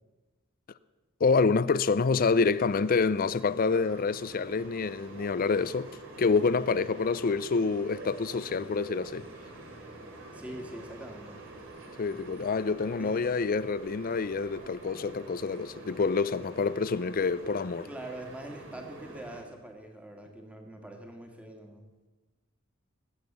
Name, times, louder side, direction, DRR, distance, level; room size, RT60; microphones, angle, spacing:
voice 1, 1.2-5.9 6.2-9.3 12.0-17.9, left 4 dB, 45° left, 0.5 m, -27 dB
sound 1, 2.2-19.4, right 2 dB, 65° right, 3.1 m, -47 dB
voice 2, 10.3-11.4 13.0-13.2 17.9-21.8, right 1 dB, 5° right, 1.8 m, -43 dB
21.0 x 8.2 x 6.8 m
head